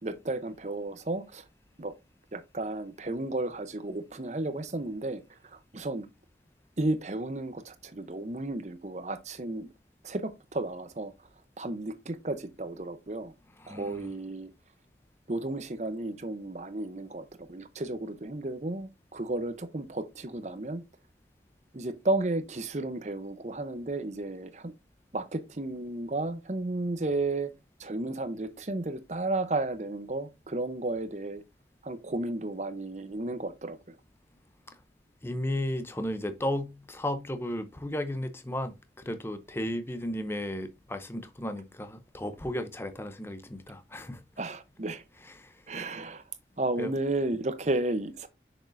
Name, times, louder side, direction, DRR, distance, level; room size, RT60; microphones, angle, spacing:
voice 1, 0.0-1.4 1.8-1.9 2.3-6.1 6.8-9.7 10.0-11.1 11.6-13.3 13.7-14.5 15.3-20.8 21.7-24.7 25.1-27.5 27.8-31.4 31.8-34.0 44.4-45.0 45.7-46.2 46.6-48.3, right 2 dB, 40° right, 0.7 m, -33 dB
voice 2, 13.6-14.1 35.2-38.7 39.0-44.2 45.4-45.6 46.8-46.9, left 1 dB, 15° left, 0.6 m, -34 dB
6.5 x 6.3 x 2.6 m
head